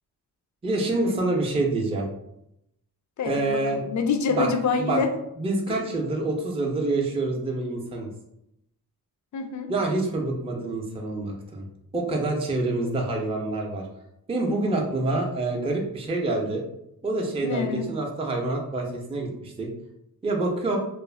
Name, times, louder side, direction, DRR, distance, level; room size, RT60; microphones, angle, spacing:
voice 1, 0.6-2.1 3.3-3.8 4.3-4.5 4.8-5.0 5.4-8.1 9.7-11.6 11.9-13.9 14.3-16.6 17.0-19.7 20.2-20.8, right 2 dB, 15° right, 0 dB, 0.4 m, -26 dB
voice 2, 3.2-5.1 5.7-5.8 9.3-9.7 17.4-17.9, left 5 dB, 50° left, 5 dB, 0.4 m, -26 dB
2.4 x 2.0 x 3.1 m, 0.81 s
cardioid pair, 85°, 39 cm